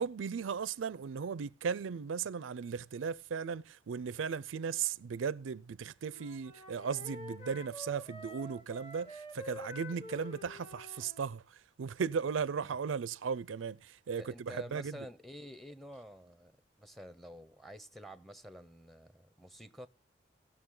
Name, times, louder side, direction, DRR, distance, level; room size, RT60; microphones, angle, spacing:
voice 1, 0.0-11.4 11.8-14.9, right 6 dB, 90° right, 0.4 m, -36 dB
Wind instrument woodwind instrument, 6.0-11.3, left 1 dB, 30° left, 1.6 m, -48 dB
voice 2, 14.2-16.5 16.8-19.9, equal, ahead, 0.7 m, -49 dB
18.5 x 6.3 x 3.8 m
head